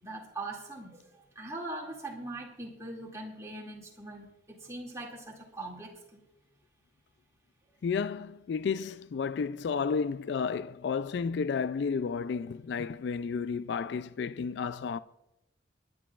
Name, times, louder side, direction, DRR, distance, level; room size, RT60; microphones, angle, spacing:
voice 1, 0.0-6.2, right 2 dB, 15° right, 2.3 m, -41 dB
voice 2, 7.8-15.0, left 5 dB, 60° left, 0.3 m, -32 dB
25.5 x 10.5 x 2.4 m
head